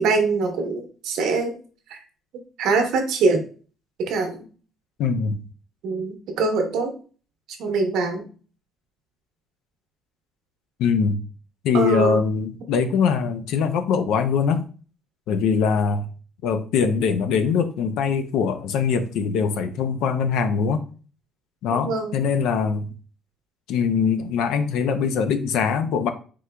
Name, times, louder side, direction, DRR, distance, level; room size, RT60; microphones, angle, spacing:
voice 1, 0.0-1.5 1.9-2.0 2.6-3.4 4.0-4.4 5.8-6.9 7.6-8.3 11.7-12.2 21.7-22.1, right 4 dB, 70° right, 4 dB, 1.0 m, -23 dB
voice 2, 5.0-5.4 10.8-11.2 11.6-14.6 15.3-16.1 16.4-20.8 21.6-22.9 23.7-26.1, left 6 dB, 75° left, 8 dB, 0.5 m, -22 dB
4.5 x 3.8 x 2.2 m, 0.39 s
cardioid pair, 175°, 0 cm